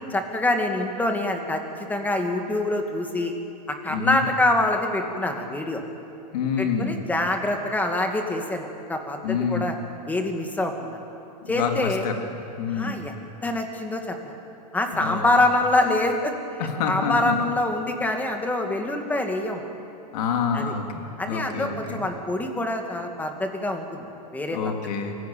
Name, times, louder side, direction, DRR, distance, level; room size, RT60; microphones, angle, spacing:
voice 1, 0.1-1.6 1.9-3.3 3.7-5.8 6.6-9.7 10.1-10.9 11.5-12.0 12.7-13.1 13.4-14.3 14.7-16.3 16.9-19.6 20.5-20.7 21.2-24.7, left 2 dB, 10° left, 4 dB, 2.3 m, -25 dB
voice 2, 3.9-4.2 6.3-7.0 9.2-9.7 11.6-11.8 12.0-12.1 12.6-13.0 14.9-15.3 16.6-17.4 20.1-22.0 24.5-25.1, left 6 dB, 65° left, 3 dB, 3.2 m, -27 dB
24.5 x 16.0 x 9.3 m, 2.8 s
supercardioid pair, 135°, 21 cm